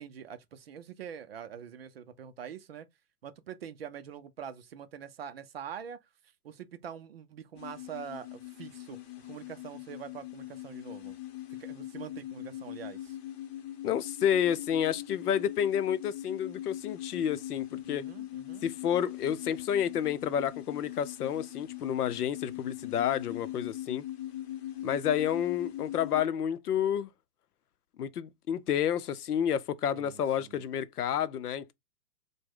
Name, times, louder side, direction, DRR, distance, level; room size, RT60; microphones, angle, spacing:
voice 1, 0.0-2.9 3.2-6.0 6.4-9.0 9.2-11.1 11.6-13.2 17.9-18.7 29.9-30.6, right 8 dB, 45° right, 0.4 m, -44 dB
sound 1, 7.6-26.2, left 13 dB, 40° left, 0.9 m, -41 dB
voice 2, 13.8-18.1 18.6-24.1 24.8-27.1 28.0-31.7, left 9 dB, 75° left, 0.6 m, -30 dB
4.7 x 2.2 x 3.6 m
hypercardioid pair, 125°, 47 cm